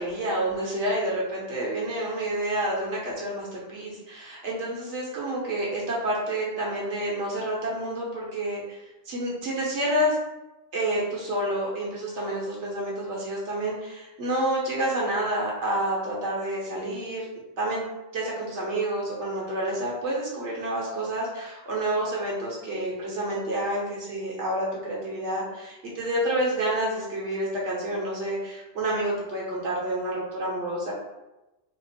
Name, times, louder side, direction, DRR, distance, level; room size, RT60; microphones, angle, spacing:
voice 1, 0.0-8.8 9.1-10.2 10.7-17.3 17.6-17.8 18.1-30.9, right 1 dB, 70° right, -4 dB, 1.1 m, -29 dB
2.8 x 2.0 x 4.0 m, 1.0 s
omnidirectional pair, 1.3 m